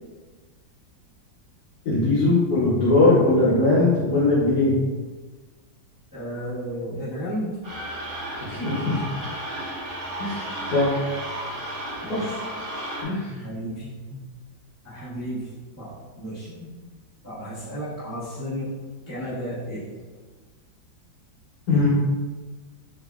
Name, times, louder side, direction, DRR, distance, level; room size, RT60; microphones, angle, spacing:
voice 1, 1.8-4.8 8.5-9.0 10.2-11.0 12.1-12.2 13.0-13.3 21.7-21.9, left 2 dB, 60° left, -8 dB, 1.0 m, -20 dB
voice 2, 6.1-7.6 12.0-12.4 13.3-14.2 14.8-16.7 17.2-18.7 19.1-20.0, equal, 20° right, -12 dB, 0.4 m, -33 dB
sound 1, 7.6-13.0, right 1 dB, 90° right, 1.6 m, -33 dB
3.5 x 2.2 x 2.3 m, 1.3 s
omnidirectional pair, 2.1 m